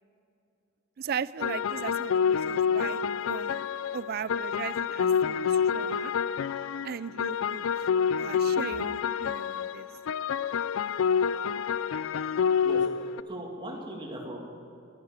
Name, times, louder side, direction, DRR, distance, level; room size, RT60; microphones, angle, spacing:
voice 1, 1.0-3.6 3.9-6.1 6.8-7.7 8.2-9.9, right 7 dB, 50° right, 18 dB, 0.3 m, -38 dB
sound 1, 1.4-13.2, left 7 dB, 80° left, 0.4 m, -28 dB
voice 2, 12.6-14.6, equal, 25° right, -1 dB, 2.4 m, -39 dB
13.0 x 10.5 x 8.8 m, 2.8 s
head